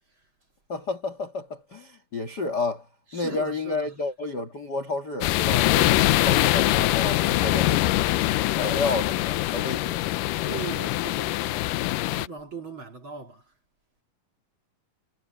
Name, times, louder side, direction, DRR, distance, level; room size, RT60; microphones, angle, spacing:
voice 1, 0.7-2.9 3.1-8.0 8.5-10.0, left 3 dB, 40° left, 1.6 m, -31 dB
voice 2, 3.1-3.9 10.5-11.7 12.1-13.4, right 4 dB, 35° right, 2.7 m, -39 dB
sound 1, 5.2-12.3, left 17 dB, 85° left, 1.9 m, -23 dB
omnidirectional pair, 4.5 m